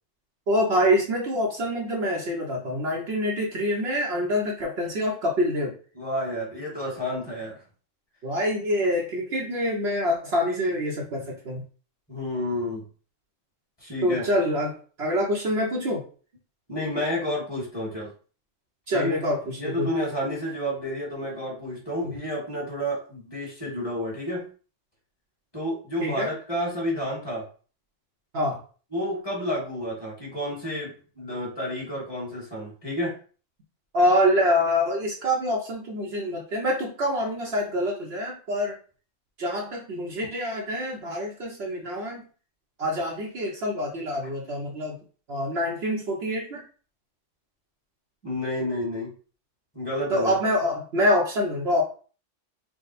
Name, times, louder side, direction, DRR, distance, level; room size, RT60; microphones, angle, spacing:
voice 1, 0.5-5.7 8.2-11.6 14.0-16.1 18.9-19.9 22.0-22.1 26.0-26.3 28.3-28.6 33.9-38.8 39.4-42.2 42.8-45.0 45.3-46.6 50.1-51.8, equal, 60° right, -1 dB, 0.9 m, -26 dB
voice 2, 6.0-7.6 12.1-12.9 13.8-14.2 16.7-18.1 18.9-19.2 19.6-24.5 25.5-27.4 28.9-33.1 48.2-49.1 49.7-50.3, left 1 dB, 20° left, -5 dB, 1.7 m, -30 dB
3.6 x 2.2 x 4.1 m, 0.39 s
omnidirectional pair, 1.3 m